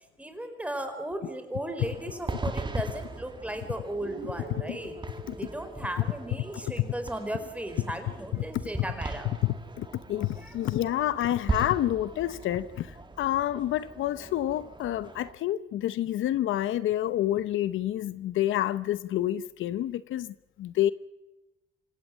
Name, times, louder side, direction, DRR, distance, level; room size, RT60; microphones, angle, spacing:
voice 1, 0.2-4.9 5.3-9.3 10.4-10.6, right 1 dB, 5° right, 4.7 m, -36 dB
sound 1, 1.8-15.3, right 3 dB, 25° right, 2.2 m, -39 dB
Guitar, 4.0-8.0, right 2 dB, 45° right, 5.1 m, -46 dB
voice 2, 9.4-20.9, left 13 dB, 80° left, 0.9 m, -28 dB
27.0 x 16.5 x 7.5 m
cardioid pair, 90°, 20 cm